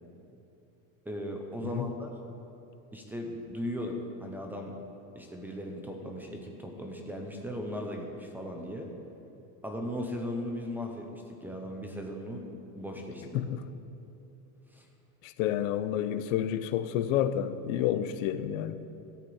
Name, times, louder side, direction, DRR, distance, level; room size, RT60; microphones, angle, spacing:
voice 1, 1.1-2.1 2.9-4.8 5.2-8.9 9.6-12.5 12.8-13.4 14.7-14.9, equal, 5° right, 0.5 m, -37 dB
voice 2, 15.2-18.7, left 10 dB, 75° left, 0.7 m, -29 dB
13.5 x 5.9 x 8.4 m
cardioid pair, 175°, 39 cm